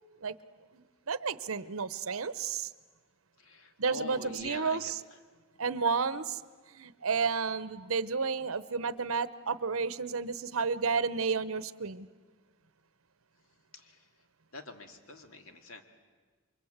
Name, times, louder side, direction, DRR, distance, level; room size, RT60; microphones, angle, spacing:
voice 1, 0.7-2.7 3.8-5.0 5.6-6.4 6.7-12.1, right 5 dB, 75° right, 15 dB, 0.9 m, -31 dB
voice 2, 3.4-4.9 13.7-14.0 14.5-15.8, left 2 dB, 70° left, 5 dB, 2.4 m, -45 dB
28.5 x 24.0 x 8.1 m, 1.5 s
head